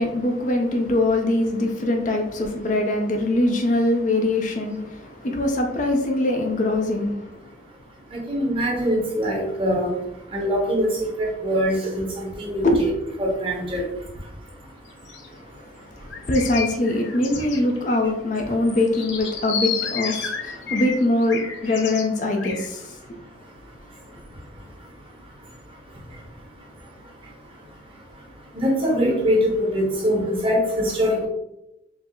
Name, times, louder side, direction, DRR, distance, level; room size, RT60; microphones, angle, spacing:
voice 1, 0.0-7.5 12.6-12.9 15.3-23.2, left 2 dB, 40° left, 0.5 m, -23 dB
voice 2, 8.1-9.9 10.3-10.9 11.2-12.9 13.2-13.8 28.5-31.3, equal, 30° right, 1.1 m, -23 dB
sound 1, 14.9-15.3 16.1-18.1 18.4-18.5 18.6-22.0 22.4-22.7, left 6 dB, 80° left, 0.7 m, -31 dB
4.8 x 2.0 x 3.7 m
head